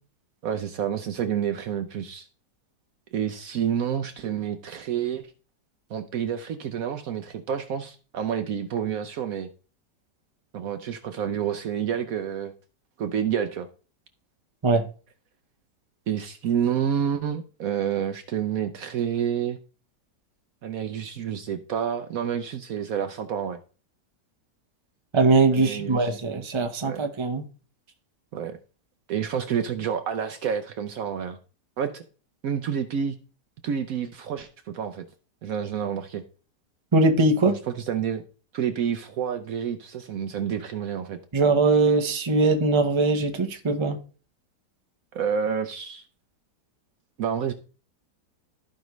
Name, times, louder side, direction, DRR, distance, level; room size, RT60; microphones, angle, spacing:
voice 1, 0.4-2.3 3.1-5.3 5.9-9.5 10.5-12.5 13.0-13.7 16.1-19.6 20.6-23.6 25.5-26.1 26.8-27.1 28.3-28.6 29.1-31.4 31.8-32.0 32.4-33.1 33.6-35.0 35.4-36.2 37.5-37.6 37.9-38.2 38.5-41.2 45.1-46.0 47.2-47.5, right 8 dB, 65° right, 1.0 m, -29 dB
voice 2, 25.1-27.4 36.9-37.6 41.3-44.0, right 3 dB, 25° right, 0.8 m, -21 dB
14.0 x 5.2 x 3.1 m
omnidirectional pair, 1.8 m